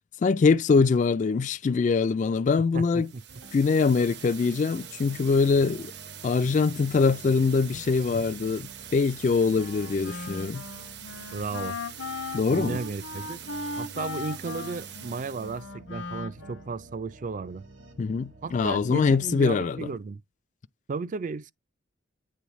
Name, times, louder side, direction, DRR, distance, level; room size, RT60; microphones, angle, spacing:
voice 1, 0.2-3.1 3.5-5.9 6.2-10.7 12.3-12.8 18.0-19.9, left 4 dB, 40° left, 0.3 m, -23 dB
voice 2, 2.7-3.2 11.3-11.8 12.5-13.4 13.8-17.6 18.4-20.2 20.9-21.5, right 4 dB, 40° right, 0.4 m, -34 dB
sound 1, 3.0-15.6, right 10 dB, 60° right, 0.8 m, -44 dB
sound 2, 3.3-19.4, right 2 dB, 80° right, 1.3 m, -50 dB
Wind instrument woodwind instrument, 9.5-16.9, left 3 dB, 85° left, 0.7 m, -38 dB
8.5 x 3.9 x 3.1 m
head